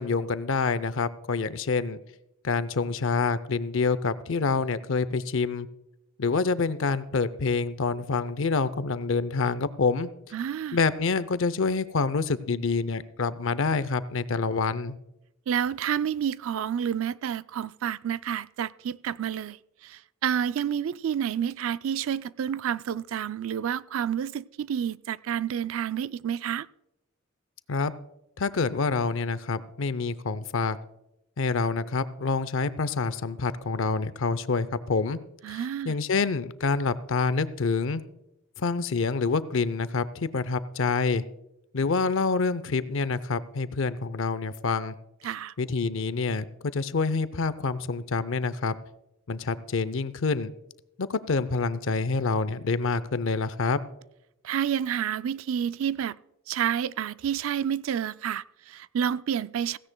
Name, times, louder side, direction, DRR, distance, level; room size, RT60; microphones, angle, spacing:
voice 1, 0.0-2.0 2.4-5.7 6.2-10.1 10.7-15.0 27.7-27.9 28.4-30.8 31.4-35.2 35.8-38.0 38.6-41.2 41.7-44.9 45.6-46.4 46.7-48.8 49.3-50.5 51.0-53.8, left 4 dB, 65° left, 0.6 m, -27 dB
voice 2, 10.3-10.8 15.5-19.6 19.8-26.7 35.4-35.9 45.2-45.5 54.4-56.1 56.5-59.8, right 8 dB, 70° right, 0.3 m, -29 dB
16.5 x 16.0 x 2.2 m
head